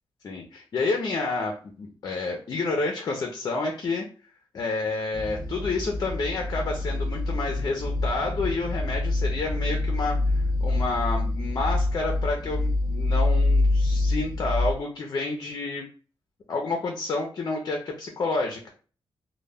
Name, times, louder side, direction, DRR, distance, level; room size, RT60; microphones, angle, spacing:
voice 1, 0.2-4.1 4.5-15.9 16.5-18.7, left 3 dB, 40° left, 2 dB, 0.4 m, -29 dB
sound 1, 5.1-14.7, left 2 dB, 50° right, 0.6 m, -26 dB
2.1 x 2.1 x 3.3 m, 0.38 s
wide cardioid pair, 170°, 9 cm